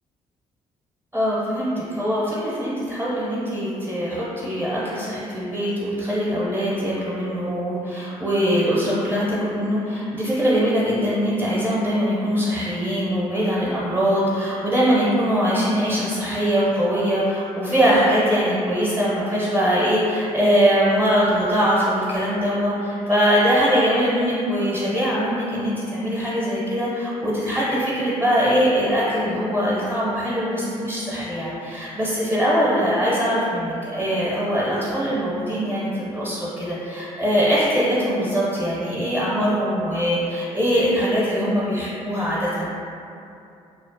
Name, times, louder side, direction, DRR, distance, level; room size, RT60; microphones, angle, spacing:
voice 1, 1.1-42.7, equal, 10° right, -9 dB, 0.6 m, -22 dB
2.4 x 2.0 x 2.5 m, 2.7 s
hypercardioid pair, 50°, 16 cm